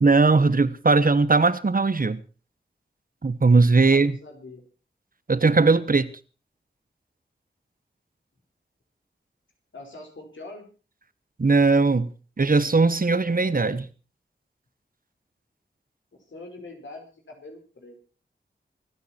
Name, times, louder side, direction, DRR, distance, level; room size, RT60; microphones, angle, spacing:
voice 1, 0.0-2.2 3.2-4.2 5.3-6.1 11.4-12.1 12.4-13.9, right 3 dB, 50° right, 1.2 m, -19 dB
voice 2, 3.9-4.6 9.7-10.7 16.3-18.0, left 2 dB, 85° left, 5.0 m, -43 dB
26.0 x 9.6 x 4.5 m
wide cardioid pair, 60°, 19 cm